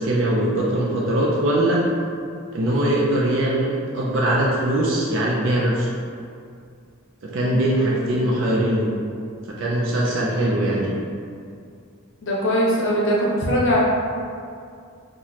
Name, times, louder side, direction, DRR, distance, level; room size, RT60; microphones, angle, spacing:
voice 1, 0.0-1.8 2.5-5.9 7.3-8.9 9.6-11.0, right 1 dB, 60° right, -4 dB, 0.4 m, -21 dB
voice 2, 7.7-8.2 12.2-13.8, equal, 60° left, -5 dB, 0.7 m, -22 dB
2.9 x 2.1 x 3.9 m, 2.3 s
head